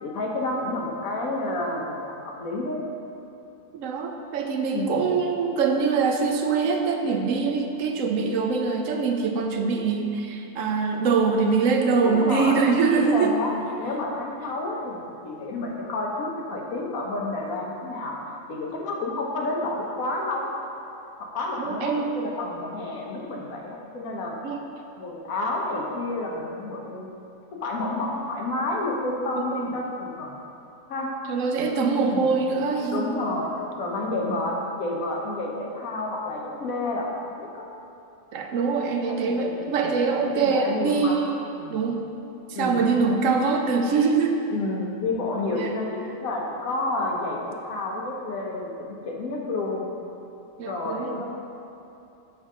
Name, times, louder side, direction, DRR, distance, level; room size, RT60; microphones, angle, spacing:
voice 1, 0.0-2.8 4.7-5.1 12.0-12.6 12.9-18.2 18.5-20.5 21.2-24.4 25.0-27.2 27.5-30.4 30.9-31.2 32.0-32.3 32.9-33.5 33.8-37.6 39.0-39.6 40.2-41.2 41.6-41.8 42.5-42.9 44.5-49.9 50.7-51.2, left 2 dB, 70° left, -1 dB, 1.3 m, -30 dB
voice 2, 3.7-13.3 21.6-22.1 24.4-24.6 29.4-29.7 31.3-33.2 38.3-41.4 41.7-42.1 42.5-44.4 45.5-45.7 50.6-51.2, right 5 dB, 70° right, 3 dB, 0.9 m, -23 dB
6.6 x 6.3 x 3.6 m, 2.8 s
omnidirectional pair, 1.5 m